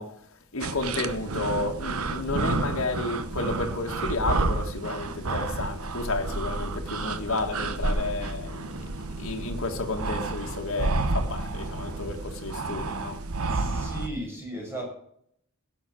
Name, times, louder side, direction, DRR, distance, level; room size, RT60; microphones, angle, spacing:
voice 1, 0.0-8.9 9.2-13.2, left 2 dB, 65° left, 1.8 m, -32 dB
sound 1, 0.6-14.1, right 3 dB, 80° right, 1.0 m, -30 dB
voice 2, 13.5-14.8, right 1 dB, 10° right, 5.5 m, -36 dB
17.0 x 7.1 x 6.2 m
head